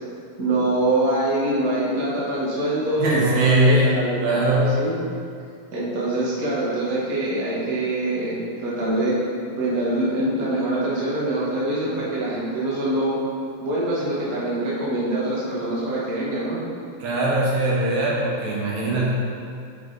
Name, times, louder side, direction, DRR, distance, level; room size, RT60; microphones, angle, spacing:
voice 1, 0.4-4.9 5.7-9.2 9.6-13.1 13.6-16.6, right 1 dB, 90° right, -7 dB, 0.7 m, -24 dB
voice 2, 3.0-4.7 17.0-19.1, right 1 dB, 65° right, -4 dB, 2.1 m, -21 dB
7.1 x 4.9 x 3.8 m, 2.3 s
omnidirectional pair, 3.9 m